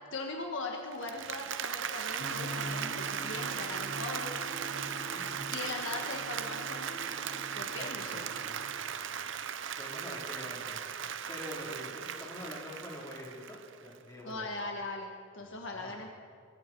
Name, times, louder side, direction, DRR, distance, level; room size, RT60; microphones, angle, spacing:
voice 1, 0.1-4.3 5.5-7.1 7.5-8.3 14.2-16.1, left 3 dB, 60° left, 2 dB, 1.6 m, -40 dB
Applause, 0.9-13.9, right 8 dB, 60° right, 0.7 m, -38 dB
sound 1, 2.2-8.7, equal, 20° right, 7.6 m, -44 dB
voice 2, 5.1-5.5 7.6-9.2 9.7-10.8 11.3-14.5 15.4-16.1, left 1 dB, 15° left, -4 dB, 4.5 m, -46 dB
23.5 x 23.5 x 4.7 m, 2.3 s
head